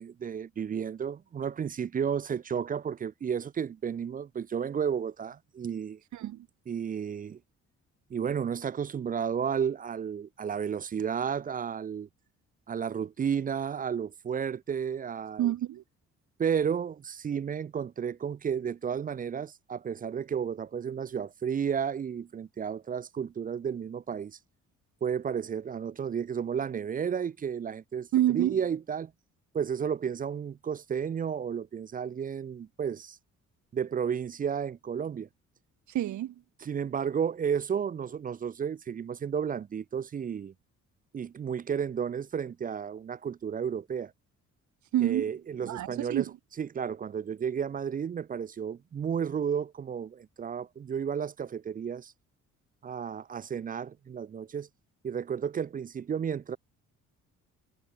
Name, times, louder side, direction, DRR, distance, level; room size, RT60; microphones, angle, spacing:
voice 1, 0.0-6.0 6.7-7.4 8.1-12.1 12.7-15.5 16.4-24.4 25.0-28.1 28.3-29.1 29.5-33.2 33.7-35.3 36.6-40.5 41.1-44.1 45.0-46.3 46.6-52.1 52.8-54.7 55.0-56.6, right 7 dB, 30° right, 0.4 m, -32 dB
voice 2, 6.1-6.5 15.4-15.8 28.1-28.6 35.9-36.3 44.9-45.3 45.6-46.3, right 13 dB, 70° right, 1.4 m, -28 dB
cardioid pair, 90°, 30 cm